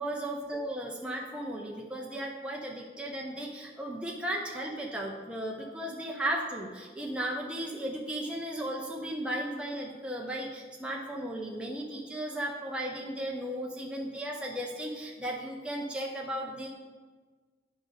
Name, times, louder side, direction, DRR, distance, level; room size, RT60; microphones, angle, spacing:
voice 1, 0.0-16.7, right 1 dB, 5° right, -2 dB, 0.7 m, -35 dB
10.5 x 5.1 x 3.8 m, 1.4 s
head